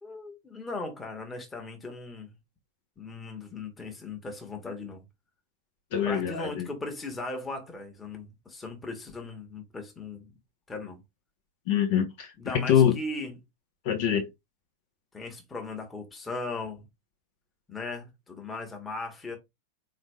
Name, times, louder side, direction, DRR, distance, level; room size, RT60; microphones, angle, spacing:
voice 1, 0.0-2.3 3.0-5.0 6.0-10.3 10.7-11.0 12.4-13.4 15.1-16.8 17.7-19.4, left 3 dB, 15° left, 1.4 m, -38 dB
voice 2, 5.9-6.7 11.7-12.3 12.5-12.9 13.8-14.3, left 9 dB, 50° left, 1.1 m, -24 dB
4.2 x 3.3 x 3.2 m
figure-of-eight pair, 90°, 0 cm